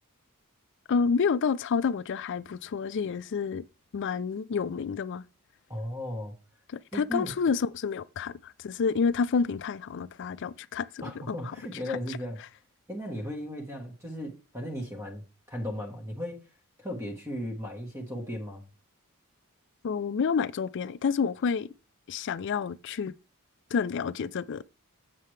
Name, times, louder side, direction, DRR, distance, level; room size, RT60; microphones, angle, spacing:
voice 1, 0.9-3.6 3.9-5.2 6.7-10.9 11.3-11.4 19.8-21.7 22.1-23.1 23.7-24.6, left 5 dB, 55° left, 0.4 m, -29 dB
voice 2, 5.7-6.3 6.9-7.3 11.0-12.4 12.9-16.4 16.8-18.7, equal, 15° right, 1.2 m, -36 dB
7.6 x 7.5 x 3.2 m
head